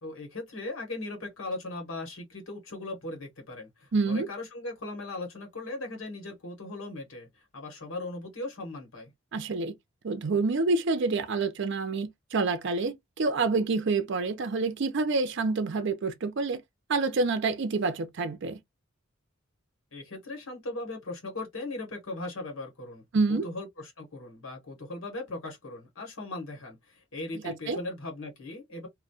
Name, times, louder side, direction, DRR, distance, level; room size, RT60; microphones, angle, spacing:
voice 1, 0.0-9.1 19.9-23.0 23.3-28.9, left 2 dB, 80° left, 1.0 m, -38 dB
voice 2, 3.9-4.3 9.3-9.7 10.0-16.6 16.9-18.6 23.1-23.5 27.4-27.8, right 3 dB, 60° right, 0.5 m, -27 dB
2.2 x 2.1 x 2.6 m
head